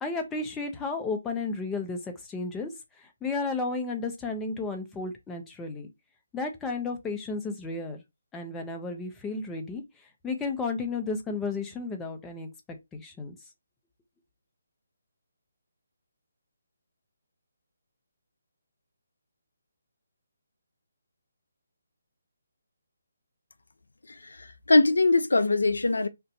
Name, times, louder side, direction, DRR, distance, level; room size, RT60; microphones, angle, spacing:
voice 1, 0.0-2.7 3.0-5.9 6.3-8.0 8.3-9.8 10.2-12.5 12.9-13.4, left 3 dB, 10° left, 0.6 m, -33 dB
voice 2, 24.1-26.1, left 2 dB, 85° left, 0.4 m, -22 dB
2.6 x 2.3 x 3.8 m
figure-of-eight pair, 155°, 0 cm